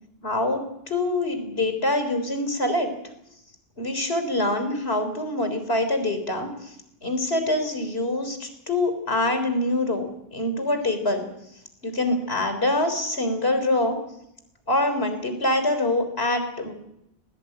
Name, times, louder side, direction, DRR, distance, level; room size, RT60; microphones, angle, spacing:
voice 1, 0.2-2.9 3.8-6.7 7.0-11.3 11.8-14.0 14.7-16.7, left 1 dB, 75° left, 8 dB, 4.1 m, -25 dB
20.0 x 18.0 x 9.0 m, 0.82 s
omnidirectional pair, 1.1 m